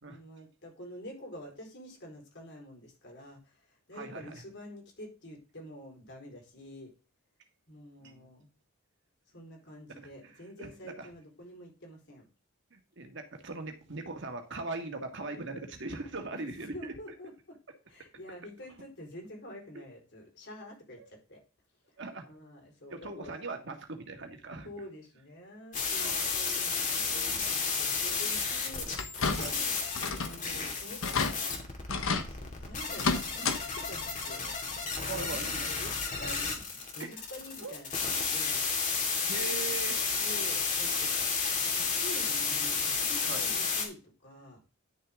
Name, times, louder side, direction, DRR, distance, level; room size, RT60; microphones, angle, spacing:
voice 1, 0.1-6.9 7.7-8.5 9.3-12.3 16.3-16.4 16.7-17.6 17.9-21.4 21.9-22.0 22.2-23.5 24.6-31.4 32.1-34.6 35.1-38.6 40.2-41.1 41.4-44.6, equal, 55° left, 1 dB, 4.2 m, -48 dB
voice 2, 3.9-4.4 8.0-8.3 10.0-10.3 10.6-11.1 12.7-17.0 19.8-19.9 22.0-22.3 22.9-24.7 26.0-26.3 26.9-27.1 29.3-29.6 35.0-35.7 37.0-37.2 37.6-37.8 39.3-40.0 43.3-43.4, right 3 dB, 60° right, 5 dB, 1.8 m, -40 dB
sound 1, 25.7-43.8, left 5 dB, 35° left, 2.7 m, -32 dB
sound 2, 28.9-29.6 29.9-30.4 30.7-30.8 31.0-31.3 31.9-32.3 32.9-33.6 33.9-34.1 35.4-35.5 36.0-36.1, left 4 dB, 75° left, 1.3 m, -30 dB
11.0 x 6.7 x 3.7 m, 0.33 s
head